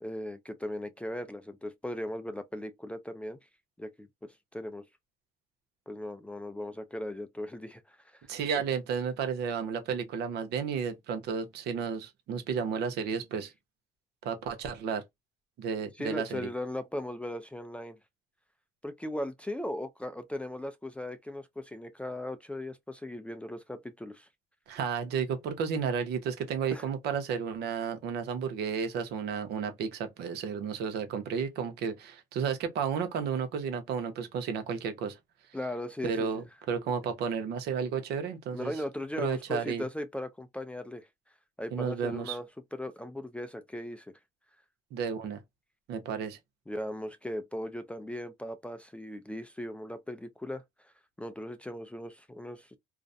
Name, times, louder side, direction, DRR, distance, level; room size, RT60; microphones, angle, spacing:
voice 1, 0.0-3.4 3.8-4.8 5.9-8.2 16.0-18.0 18.8-24.3 26.7-26.8 35.5-36.3 38.5-41.1 41.6-44.1 46.7-50.9 51.2-52.8, left 1 dB, 5° left, 0.3 m, -38 dB
voice 2, 8.3-13.5 14.2-15.0 15.6-16.5 24.7-35.2 36.0-38.7 39.2-39.8 41.7-42.4 44.9-45.4 45.9-46.4, right 6 dB, 75° right, 0.7 m, -32 dB
2.4 x 2.0 x 2.5 m
cardioid pair, 110°, 17 cm